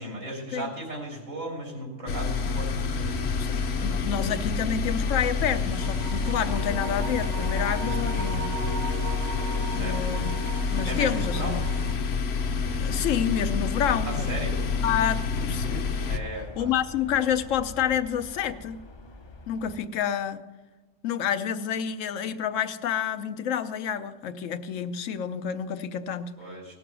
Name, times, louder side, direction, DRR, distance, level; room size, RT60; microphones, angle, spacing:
voice 1, 0.0-3.3 9.7-10.0 10.8-11.6 14.1-14.6 16.1-16.7 26.4-26.7, right 1 dB, 90° right, -1 dB, 3.6 m, -36 dB
sound 1, 2.1-16.2, left 5 dB, 60° left, 1.0 m, -28 dB
sound 2, 2.9-19.8, left 2 dB, 40° left, 0.4 m, -40 dB
voice 2, 3.4-8.5 9.7-11.6 12.8-14.3 14.8-15.9 16.6-18.8 19.5-20.4 21.0-26.3, left 8 dB, 85° left, 11 dB, 1.1 m, -29 dB
sound 3, 5.7-11.9, right 3 dB, 55° right, 1.1 m, -37 dB
17.5 x 7.0 x 6.0 m, 1.3 s
omnidirectional pair, 1.3 m